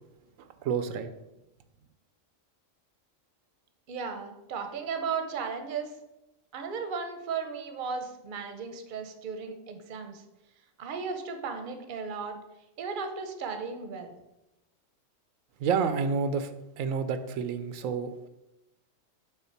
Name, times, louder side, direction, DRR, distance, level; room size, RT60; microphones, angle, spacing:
voice 1, 0.6-1.1 15.6-16.5 16.8-18.3, right 6 dB, 85° right, 10 dB, 1.0 m, -29 dB
voice 2, 3.9-5.9 6.5-10.2 10.8-12.4 12.8-14.1, right 5 dB, 45° right, 6 dB, 0.8 m, -35 dB
5.8 x 3.7 x 5.8 m, 0.94 s
omnidirectional pair, 1.3 m